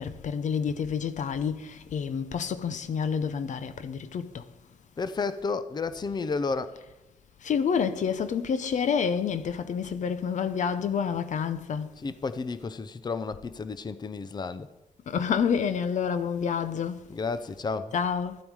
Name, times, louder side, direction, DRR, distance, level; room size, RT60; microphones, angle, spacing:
voice 1, 0.0-4.4 7.4-11.9 15.1-17.0 17.9-18.4, left 7 dB, 70° left, 0.8 m, -28 dB
voice 2, 5.0-6.8 12.0-14.7 17.1-17.9, left 4 dB, 35° left, 0.6 m, -32 dB
13.5 x 8.9 x 4.8 m
cardioid pair, 95°, 13 cm